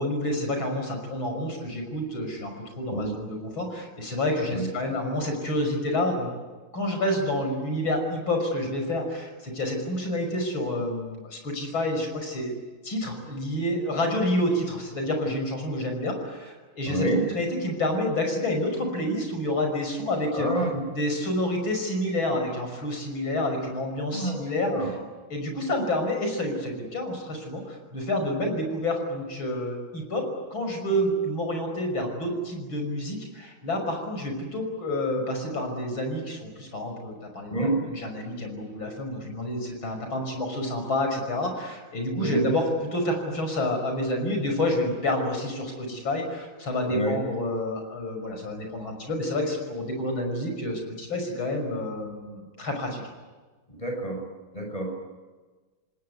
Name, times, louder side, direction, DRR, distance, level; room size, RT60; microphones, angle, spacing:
voice 1, 0.0-6.3 6.7-12.5 12.8-20.5 21.0-24.7 25.3-30.2 30.5-37.5 37.9-53.0, left 1 dB, 70° left, 4 dB, 6.6 m, -29 dB
voice 2, 16.9-17.2 20.3-20.8 24.1-24.4 24.7-24.9 37.5-37.8 42.2-42.5 46.9-47.2 53.7-54.2 54.5-54.9, right 1 dB, 15° left, 1 dB, 7.3 m, -27 dB
27.5 x 19.5 x 9.6 m, 1.3 s
omnidirectional pair, 2.2 m